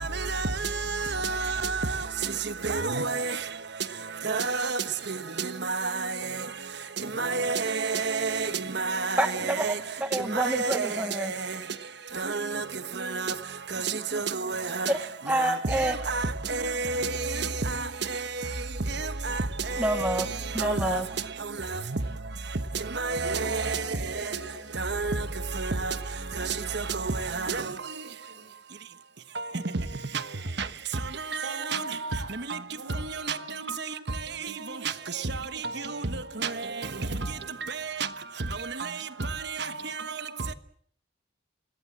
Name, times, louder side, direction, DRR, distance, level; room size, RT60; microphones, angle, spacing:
voice 1, 2.7-3.3 4.3-4.6 7.2-7.6 7.9-8.3 8.8-9.1 9.6-9.7 10.4-10.9 14.8-14.9 16.1-16.2 16.8-17.1 20.9-21.0 23.1-23.2 25.0-25.1, right 3 dB, 55° right, 1.2 m, -27 dB
voice 2, 9.2-11.3 14.9-15.0 15.2-16.0 19.8-20.3 20.5-21.1, right 1 dB, 10° right, 1.1 m, -28 dB
voice 3, 23.1-24.7 28.0-28.5 30.8-30.9 31.4-32.4 32.8-35.3 35.5-37.6 39.0-40.6, right 2 dB, 90° right, 5.1 m, -42 dB
29.5 x 17.0 x 7.5 m
head